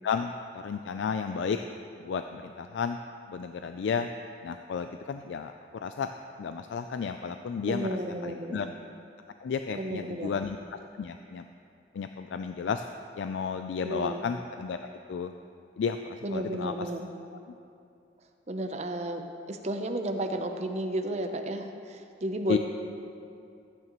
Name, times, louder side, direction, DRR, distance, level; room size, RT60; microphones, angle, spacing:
voice 1, 0.0-1.6 2.0-3.0 3.3-4.1 4.4-6.1 6.4-8.7 9.4-11.5 11.9-12.8 13.2-15.3 15.8-16.9 22.5-22.6, left 6 dB, 80° left, 7 dB, 0.3 m, -33 dB
voice 2, 7.6-8.6 9.7-10.4 13.8-14.2 16.2-17.1 18.5-22.6, right 1 dB, 40° right, 5 dB, 0.6 m, -33 dB
13.5 x 9.0 x 3.0 m, 2.6 s
head